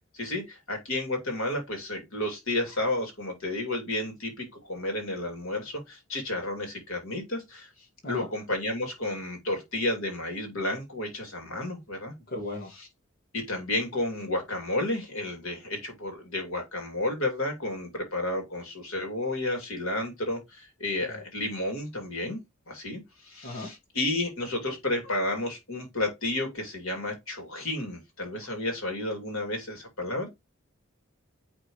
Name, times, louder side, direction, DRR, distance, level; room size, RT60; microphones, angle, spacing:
voice 1, 0.1-7.7 8.1-12.1 13.3-22.4 22.7-30.3, left 1 dB, 90° left, 2.8 m, -31 dB
voice 2, 12.3-12.7 21.0-21.2 23.4-23.7, left 2 dB, 50° left, 1.6 m, -37 dB
9.2 x 3.7 x 3.2 m
head